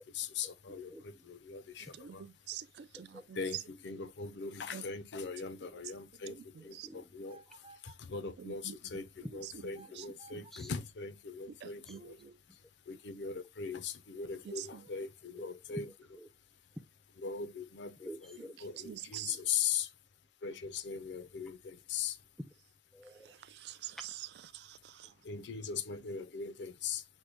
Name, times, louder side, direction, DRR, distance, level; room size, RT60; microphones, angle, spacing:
voice 1, 0.0-2.2 3.3-12.2 12.5-15.9 17.2-18.1 18.6-19.9 20.4-22.2 25.2-27.1, left 6 dB, 80° left, 0.5 m, -40 dB
voice 2, 0.7-1.3 2.9-3.3 5.6-5.7 6.6-7.2 9.7-10.0 10.5-10.7 11.9-12.6 12.9-13.0 15.3-16.3 16.8-16.9 18.0-18.8 19.1-19.4 22.9-23.3, equal, ahead, 0.5 m, -51 dB
voice 3, 2.0-3.4 4.7-4.8 6.3-6.4 6.7-6.9 8.4-8.8 10.0-10.1 10.3-10.5 11.6-12.3 14.5-14.8 18.9-19.4 23.5-24.0 24.5-25.1, right 10 dB, 65° right, 0.3 m, -46 dB
sound 1, 7.3-8.1 9.7-10.7, right 3 dB, 35° right, 1.0 m, -57 dB
6.2 x 2.1 x 3.3 m
head